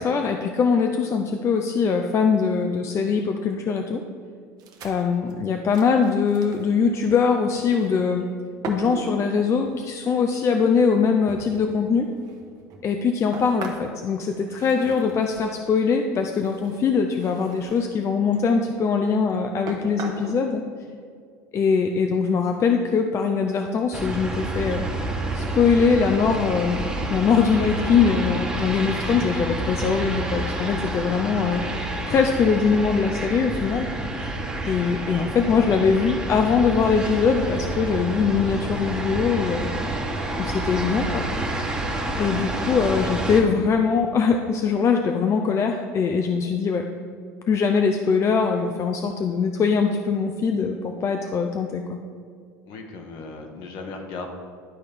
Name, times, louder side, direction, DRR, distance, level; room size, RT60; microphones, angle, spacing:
voice 1, 0.0-4.0 4.8-8.3 8.7-12.1 12.8-20.6 21.5-24.9 25.3-26.8 27.1-31.6 32.1-33.9 34.6-39.7 40.4-41.2 42.2-46.9 47.5-52.0, left 5 dB, 35° left, 4 dB, 0.5 m, -22 dB
sound 1, 4.6-6.7 7.5-8.2 8.6-9.9 10.6-10.7 11.3-15.6 16.2-17.9 18.3-18.9 19.3-19.4 19.7-20.3, right 5 dB, 50° right, 1.1 m, -40 dB
sound 2, 23.9-43.4, right 2 dB, 10° right, 1.2 m, -29 dB
voice 2, 52.7-54.3, left 4 dB, 60° left, 3 dB, 1.3 m, -37 dB
11.5 x 4.1 x 3.5 m, 2.1 s
supercardioid pair, 95°, 8 cm